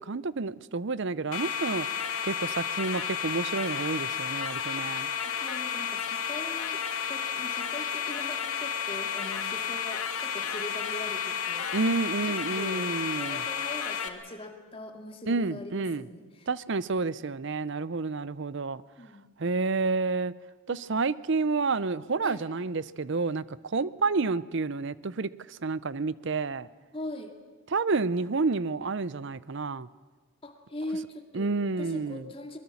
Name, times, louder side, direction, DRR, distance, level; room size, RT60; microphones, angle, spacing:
voice 1, 0.0-1.9 2.2-5.1 11.7-13.4 15.3-16.0 16.5-18.8 19.4-20.3 20.7-26.7 27.7-29.9 31.3-32.3, right 4 dB, 60° right, 18 dB, 0.6 m, -29 dB
sound 1, 1.3-14.1, left 7 dB, 90° left, 1.7 m, -32 dB
voice 2, 5.2-16.5 19.0-19.2 20.7-20.8 22.2-22.4 26.9-27.3 30.4-31.5 31.8-32.6, left 1 dB, 25° left, 5 dB, 2.1 m, -41 dB
23.0 x 21.5 x 7.2 m, 1.4 s
head